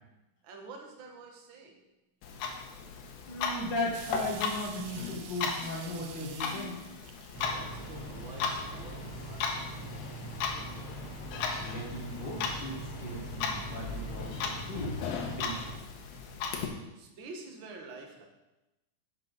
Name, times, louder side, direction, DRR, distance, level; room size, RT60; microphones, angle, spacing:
voice 1, 0.4-1.8 7.4-9.0 9.2-9.7 16.9-18.3, right 3 dB, 55° right, 1 dB, 1.4 m, -47 dB
Clock, 2.2-16.7, left 5 dB, 80° left, 2.8 m, -37 dB
voice 2, 3.3-6.8 11.6-15.0 15.4-15.7, left 1 dB, 50° left, -1 dB, 1.4 m, -37 dB
sound 1, 3.9-8.1 8.5-8.8, right 9 dB, 90° right, 2.6 m, -48 dB
sound 2, 7.3-15.7, right 1 dB, 10° left, 1.3 m, -42 dB
11.0 x 7.6 x 4.0 m, 0.99 s
omnidirectional pair, 4.1 m